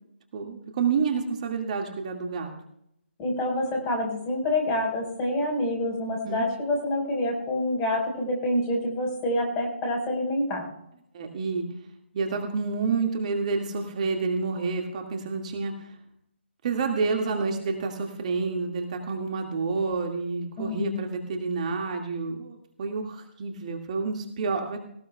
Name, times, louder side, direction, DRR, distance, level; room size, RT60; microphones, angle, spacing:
voice 1, 0.3-2.5 6.2-6.4 11.1-11.7 12.1-16.0 16.6-24.8, right 4 dB, 35° right, 3 dB, 1.9 m, -29 dB
voice 2, 3.2-10.6 20.6-21.0, left 1 dB, 20° left, 1 dB, 4.6 m, -27 dB
18.5 x 18.0 x 2.3 m, 0.75 s
figure-of-eight pair, 145°, 6 cm